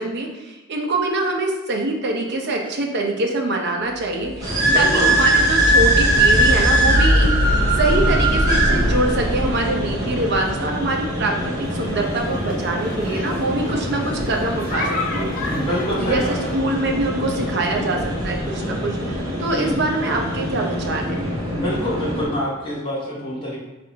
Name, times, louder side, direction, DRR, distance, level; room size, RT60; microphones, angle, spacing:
voice 1, 0.0-7.4 7.8-15.3 16.0-19.0 19.4-21.3, right 2 dB, 55° right, 2 dB, 0.6 m, -24 dB
sound 1, 4.0-11.5 14.9-15.0 16.1-16.2, equal, 80° left, 0.8 m, -23 dB
sound 2, 4.4-22.2, right 1 dB, 20° right, 1.1 m, -23 dB
voice 2, 4.6-5.1 7.9-8.2 15.5-16.5 19.5-19.8 21.5-23.6, equal, 25° left, -7 dB, 1.5 m, -26 dB
sound 3, 11.6-16.6, left 3 dB, 40° left, 0.6 m, -32 dB
3.8 x 2.5 x 4.5 m, 1.1 s
head